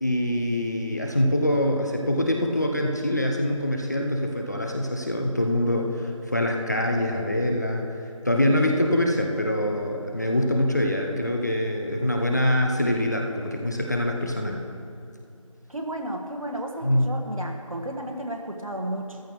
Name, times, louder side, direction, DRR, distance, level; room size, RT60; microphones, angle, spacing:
voice 1, 0.0-7.9 8.2-14.6 16.8-17.0, left 1 dB, 30° left, 2 dB, 0.6 m, -24 dB
voice 2, 15.7-19.2, right 1 dB, 75° right, 2 dB, 1.7 m, -33 dB
14.0 x 12.5 x 3.1 m, 2.5 s
figure-of-eight pair, 170°, 18 cm